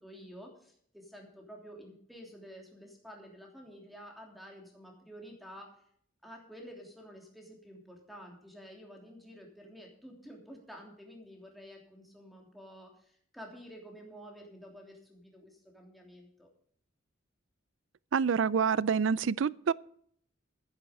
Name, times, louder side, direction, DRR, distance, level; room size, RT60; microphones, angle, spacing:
voice 1, 0.0-5.7 6.2-16.5, equal, ahead, 3.2 m, -50 dB
voice 2, 18.1-19.7, right 6 dB, 70° right, 0.4 m, -27 dB
12.5 x 10.5 x 5.2 m
head